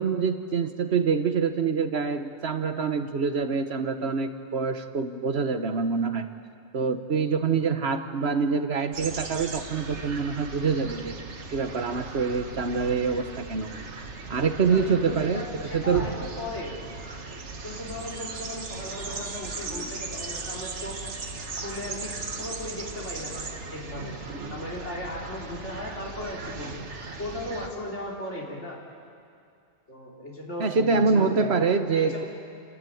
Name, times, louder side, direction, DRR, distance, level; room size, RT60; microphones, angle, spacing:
voice 1, 0.0-6.3 6.7-11.2 11.5-13.7 14.3-16.1 30.6-32.2, right 5 dB, 65° right, 8 dB, 1.3 m, -25 dB
sound 1, 8.9-27.7, right 3 dB, 80° right, 1.7 m, -37 dB
voice 2, 14.7-16.8 17.6-20.9 21.6-24.2 24.5-26.9 27.2-28.8 29.9-32.3, left 1 dB, 80° left, -3 dB, 4.1 m, -37 dB
29.5 x 12.5 x 9.2 m, 2.4 s
omnidirectional pair, 1.2 m